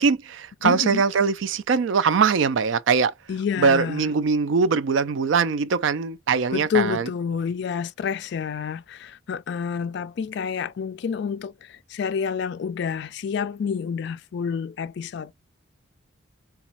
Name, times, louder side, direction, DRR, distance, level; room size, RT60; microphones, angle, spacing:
voice 1, 0.0-3.1 3.6-7.1, right 5 dB, 65° right, 0.4 m, -22 dB
voice 2, 0.6-1.0 3.3-4.1 6.5-15.3, left 6 dB, 55° left, 0.3 m, -28 dB
3.9 x 2.3 x 2.8 m
head